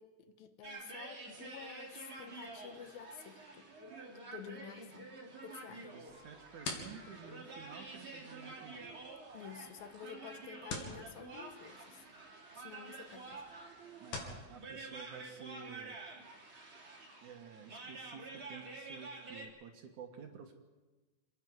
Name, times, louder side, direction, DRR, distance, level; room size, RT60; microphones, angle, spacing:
voice 1, 0.0-3.7 4.3-5.1 5.4-5.9 9.3-12.0 12.6-13.5, left 9 dB, 85° left, 2.9 m, -51 dB
sound 1, 0.6-19.5, right 3 dB, 35° right, 3.6 m, -49 dB
voice 2, 5.8-8.9 14.0-16.0 17.2-20.5, right 6 dB, 65° right, 2.7 m, -52 dB
sound 2, 6.1-14.4, left 3 dB, 70° left, 4.0 m, -49 dB
28.0 x 10.0 x 9.4 m
omnidirectional pair, 4.1 m